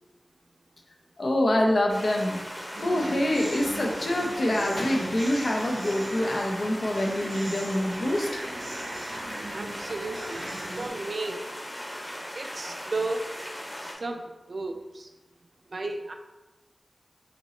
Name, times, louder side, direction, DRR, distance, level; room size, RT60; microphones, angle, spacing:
voice 1, 1.2-2.4 2.8-8.4, left 1 dB, 70° left, 1 dB, 0.7 m, -25 dB
sound 1, 1.9-13.9, equal, 15° left, 1.0 m, -38 dB
sound 2, 2.7-10.9, right 1 dB, 80° right, 0.9 m, -39 dB
voice 2, 9.5-10.5 10.8-11.5 12.4-13.3 13.8-15.1 15.7-16.1, right 2 dB, 65° right, 4 dB, 0.4 m, -34 dB
5.1 x 2.9 x 3.1 m, 1.1 s
wide cardioid pair, 80°, 0 cm